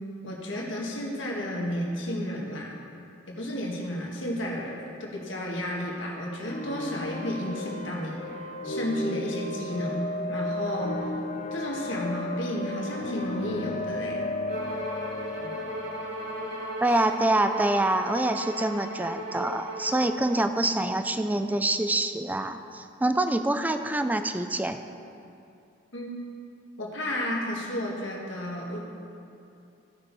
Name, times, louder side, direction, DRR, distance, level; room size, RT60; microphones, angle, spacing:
voice 1, 0.2-2.7 3.3-11.2 11.5-14.2 15.4-15.5 16.9-17.0 25.9-26.2 26.8-28.9, left 1 dB, 75° left, -2 dB, 1.7 m, -32 dB
sound 1, 6.4-18.1, left 2 dB, 40° left, 0.7 m, -35 dB
Bowed string instrument, 14.5-20.2, equal, 65° right, 2.5 m, -36 dB
voice 2, 16.8-24.8, right 2 dB, 10° right, 8 dB, 0.4 m, -26 dB
15.5 x 6.2 x 4.1 m, 2.7 s
head